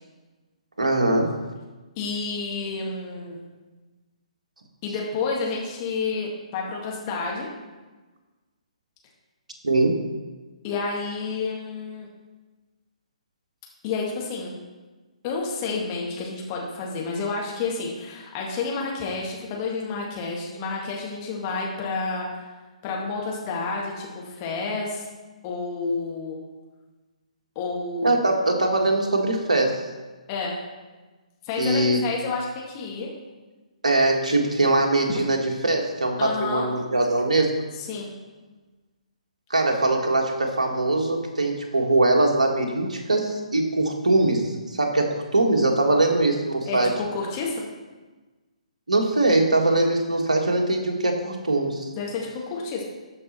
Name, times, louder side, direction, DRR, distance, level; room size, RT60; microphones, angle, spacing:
voice 1, 0.8-1.3 9.6-9.9 28.0-29.8 31.6-32.0 33.8-37.5 39.5-46.9 48.9-51.9, right 2 dB, 75° right, 2 dB, 1.8 m, -22 dB
voice 2, 2.0-3.4 4.8-7.5 10.6-12.1 13.8-14.5 15.2-22.3 22.8-25.0 25.4-26.4 27.6-28.3 30.3-30.6 31.4-33.1 36.2-36.7 37.8-38.1 46.7-47.6 52.0-52.8, left 4 dB, 30° left, -2 dB, 1.9 m, -30 dB
13.0 x 5.4 x 4.3 m, 1.2 s
figure-of-eight pair, 130°, 4 cm